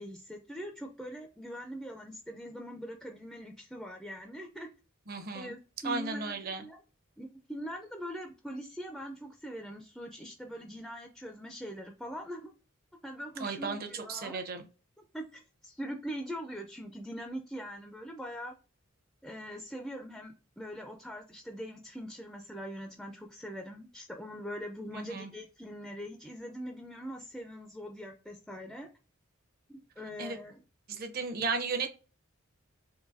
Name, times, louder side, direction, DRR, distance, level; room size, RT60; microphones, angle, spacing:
voice 1, 0.0-4.7 5.3-6.8 7.2-12.5 13.0-14.4 15.1-18.5 19.2-28.9 29.7-30.6, equal, ahead, 4 dB, 0.3 m, -42 dB
voice 2, 5.1-5.5 5.8-6.6 13.4-14.6 24.9-25.3 30.2-30.4 30.9-31.9, right 4 dB, 45° right, 6 dB, 0.7 m, -35 dB
3.9 x 2.6 x 2.5 m, 0.33 s
head